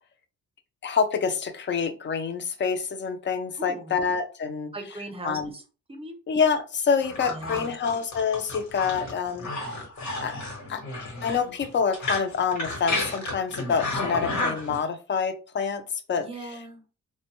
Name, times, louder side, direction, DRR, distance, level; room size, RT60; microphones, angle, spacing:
voice 1, 0.8-4.7 5.2-5.5 6.3-9.8 10.2-10.4 10.7-10.8 11.2-15.8 16.1-16.3, left 6 dB, 40° left, 9 dB, 0.5 m, -27 dB
voice 2, 3.6-4.0 4.7-5.6 5.9-6.2 7.3-7.7 16.2-16.8, right 2 dB, 20° right, 5 dB, 0.7 m, -38 dB
sound 1, 7.0-14.8, left 2 dB, 65° left, 1.1 m, -32 dB
2.5 x 2.1 x 3.0 m, 0.35 s
cardioid pair, 90°, 30 cm